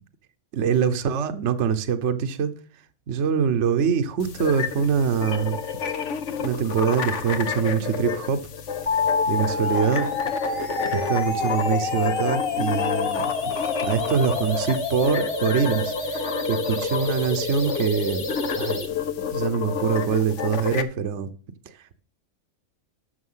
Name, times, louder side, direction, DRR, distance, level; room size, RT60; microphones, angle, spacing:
voice 1, 0.5-2.5 3.1-5.6 5.9-6.0 6.4-8.4 9.3-10.1 10.4-13.3 13.8-18.3 18.6-18.8 19.2-21.3 21.7-22.0, right 7 dB, 60° right, 1.1 m, -24 dB
sound 1, 4.2-20.8, left 7 dB, 60° left, 1.2 m, -30 dB
sound 2, 8.9-18.9, left 3 dB, 45° left, 1.7 m, -28 dB
13.0 x 7.0 x 5.6 m
omnidirectional pair, 1.5 m